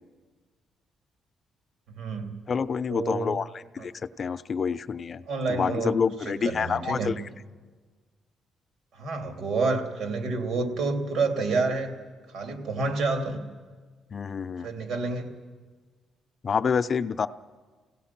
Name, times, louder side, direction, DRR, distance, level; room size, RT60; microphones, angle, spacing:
voice 1, 1.9-2.4 2.9-3.3 3.8-3.9 5.3-6.0 6.2-7.1 8.9-11.9 12.3-13.4 14.6-15.3, right 3 dB, 75° right, 4 dB, 2.8 m, -29 dB
voice 2, 2.5-3.9 4.2-5.2 5.5-7.2 14.1-14.7 16.4-17.3, left 6 dB, 45° left, 12 dB, 0.6 m, -27 dB
29.5 x 17.0 x 5.9 m, 1.5 s
cardioid pair, 90°, 0 cm